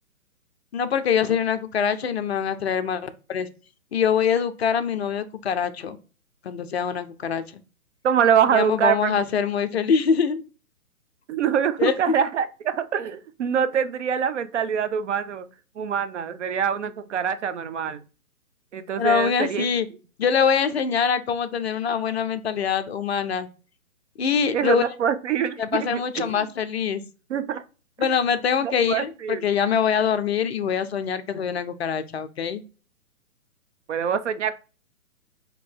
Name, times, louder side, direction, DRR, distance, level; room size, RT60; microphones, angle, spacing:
voice 1, 0.7-3.5 3.9-6.0 6.4-7.6 8.5-10.4 11.8-11.9 19.0-19.9 20.2-23.5 24.2-24.9 25.6-27.0 28.0-32.6, left 7 dB, 45° left, 0.5 m, -24 dB
voice 2, 8.0-9.1 11.3-15.5 15.8-18.0 18.7-19.7 24.5-26.4 27.3-27.6 28.0-28.1 28.6-29.5 33.9-34.5, right 8 dB, 55° right, 0.5 m, -24 dB
3.8 x 2.9 x 3.7 m
hypercardioid pair, 135°, 44 cm